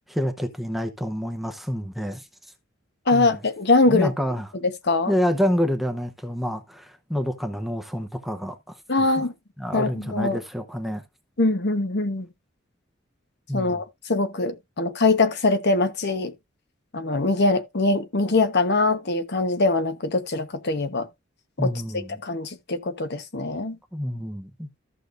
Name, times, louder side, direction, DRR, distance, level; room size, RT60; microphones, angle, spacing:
voice 1, 0.1-2.3 3.1-3.4 3.9-4.5 5.1-8.7 9.2-9.3 9.6-11.0 13.5-13.8 21.6-22.2 23.9-24.7, equal, ahead, 0.8 m, -28 dB
voice 2, 3.1-4.1 4.6-5.1 8.9-9.3 9.7-10.4 11.4-12.3 13.5-16.3 16.9-21.1 21.6-21.7 22.2-23.8, left 3 dB, 55° left, 1.1 m, -22 dB
14.0 x 6.3 x 2.6 m
head